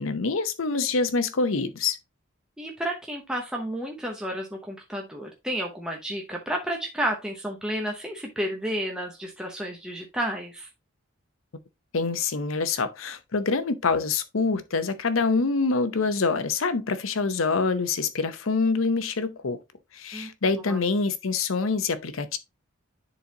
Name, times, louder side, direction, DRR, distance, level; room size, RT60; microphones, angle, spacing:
voice 1, 0.0-2.0 11.9-19.6 19.9-22.4, left 4 dB, 75° left, 0.8 m, -25 dB
voice 2, 2.6-10.7 20.1-20.3 20.5-20.8, right 1 dB, 5° right, 0.8 m, -31 dB
9.9 x 4.0 x 2.8 m
head